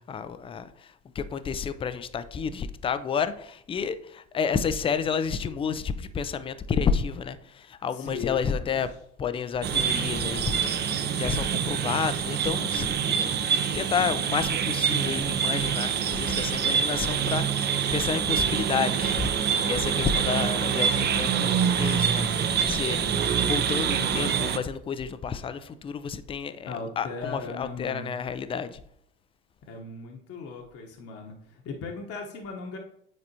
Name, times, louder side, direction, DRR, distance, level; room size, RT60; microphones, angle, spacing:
voice 1, 0.1-0.9 1.2-8.9 9.2-10.8 11.2-21.5 21.8-22.2 22.6-28.8, left 6 dB, 15° left, 0.4 m, -30 dB
voice 2, 7.9-8.8 20.0-20.1 26.7-28.1 29.7-31.3 31.6-32.8, left 4 dB, 40° left, 1.0 m, -37 dB
sound 1, 9.6-24.6, right 7 dB, 30° right, 0.6 m, -26 dB
9.5 x 4.1 x 2.8 m
hypercardioid pair, 80°, 36 cm